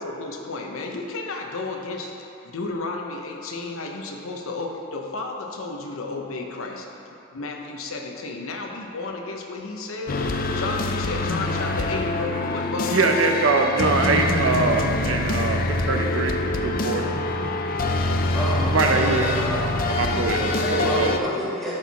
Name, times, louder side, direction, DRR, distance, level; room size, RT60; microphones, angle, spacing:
voice 1, 0.0-7.0 7.3-10.2 10.5-13.2 14.4-14.5 15.8-16.2 16.5-17.0 19.0-19.2 19.9-21.4, left 3 dB, 80° left, 2 dB, 0.9 m, -33 dB
sound 1, 10.1-21.2, left 2 dB, 40° left, 0.4 m, -25 dB
voice 2, 12.9-16.3 16.6-17.1 18.7-19.3 19.9-20.4 20.8-21.1, right 3 dB, 70° right, 4 dB, 0.7 m, -23 dB
voice 3, 18.3-19.7 20.4-21.7, right 1 dB, ahead, -9 dB, 1.5 m, -29 dB
12.0 x 4.5 x 4.1 m, 3.0 s
head